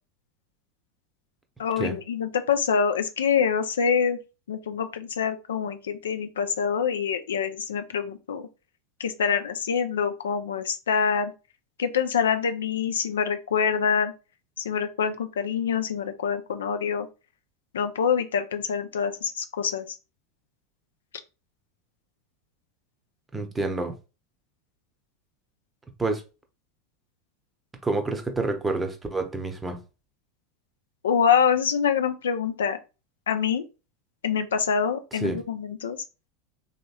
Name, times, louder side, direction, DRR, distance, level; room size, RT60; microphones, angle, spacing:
voice 1, 1.6-4.2 4.5-8.4 9.0-11.3 11.8-14.1 14.6-17.1 17.7-20.0 31.0-32.8 33.3-33.6 34.2-36.0, left 7 dB, 80° left, 0.4 m, -25 dB
voice 2, 23.3-23.9 26.0-26.2 27.8-29.8 35.1-35.4, right 3 dB, 15° right, 0.7 m, -28 dB
3.0 x 2.8 x 2.3 m
hypercardioid pair, 90°, 0 cm